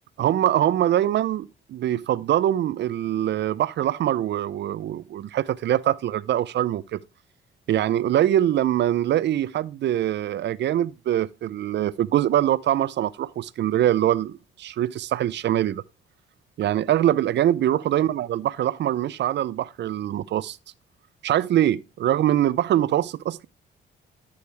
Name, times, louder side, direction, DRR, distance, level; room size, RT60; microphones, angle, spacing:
voice 1, 0.2-7.0 7.7-15.8 16.6-20.6 21.2-23.5, right 12 dB, 60° right, 0.5 m, -23 dB
11.5 x 6.5 x 3.3 m
cardioid pair, 90°, 20 cm